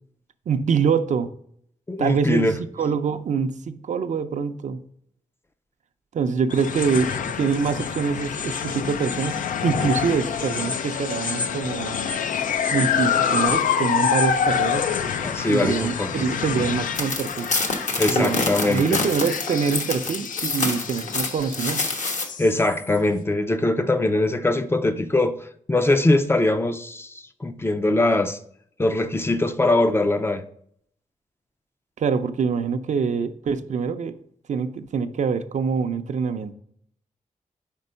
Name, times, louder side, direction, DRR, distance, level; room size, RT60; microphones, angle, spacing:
voice 1, 0.5-1.3 2.0-4.8 6.1-12.1 12.7-15.0 15.5-17.5 18.1-22.0 32.0-34.2 34.5-36.5, right 6 dB, 65° right, 0.5 m, -25 dB
voice 2, 1.9-2.6 15.2-16.1 18.0-19.0 22.4-25.4 25.7-28.4 28.8-30.4, left 2 dB, 20° left, 0.4 m, -22 dB
sound 1, 6.5-23.0, left 7 dB, 85° left, 0.5 m, -27 dB
sound 2, 17.0-22.2, left 3 dB, 65° left, 1.2 m, -27 dB
5.3 x 4.4 x 5.4 m
wide cardioid pair, 130°, 13 cm